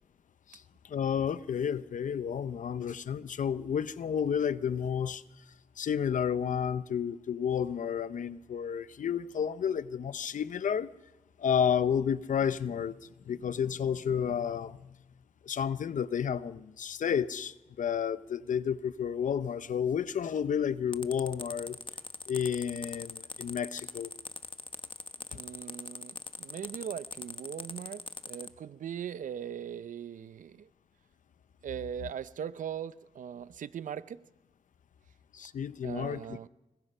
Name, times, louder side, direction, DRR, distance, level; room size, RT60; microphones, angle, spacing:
voice 1, 0.5-5.2 5.8-10.9 11.4-13.0 13.3-14.9 15.4-21.8 22.3-24.1 35.3-36.4, left 8 dB, 80° left, 0.7 m, -31 dB
sound 1, 20.9-28.5, left 4 dB, 40° left, 1.2 m, -41 dB
voice 2, 25.3-30.7 31.6-34.2 35.8-36.5, right 9 dB, 85° right, 0.6 m, -40 dB
25.0 x 21.0 x 5.6 m
cardioid pair, 75°, 13 cm